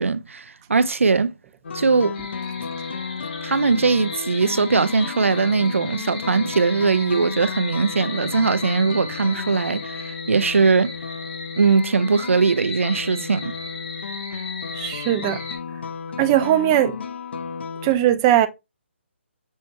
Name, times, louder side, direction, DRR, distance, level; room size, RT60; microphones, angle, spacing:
voice 1, 0.0-1.3 1.7-2.2 3.4-11.0 11.6-13.5, right 4 dB, 90° right, 0.4 m, -20 dB
sound 1, 1.6-17.9, left 5 dB, 60° left, 0.6 m, -33 dB
sound 2, 2.1-15.6, left 4 dB, 35° left, 1.4 m, -37 dB
voice 2, 14.7-15.4 16.2-17.0 17.8-18.5, right 12 dB, 20° right, 0.4 m, -19 dB
6.3 x 2.2 x 2.8 m
figure-of-eight pair, 150°, 7 cm